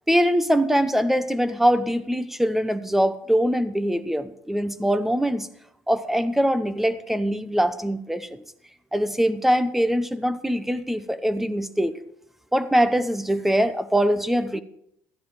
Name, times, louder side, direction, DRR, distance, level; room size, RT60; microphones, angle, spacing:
voice 1, 0.1-5.5 5.9-8.4 8.9-12.0 12.5-14.6, equal, 5° right, 13 dB, 0.9 m, -22 dB
13.5 x 10.0 x 4.9 m, 0.74 s
cardioid pair, 110°, 7 cm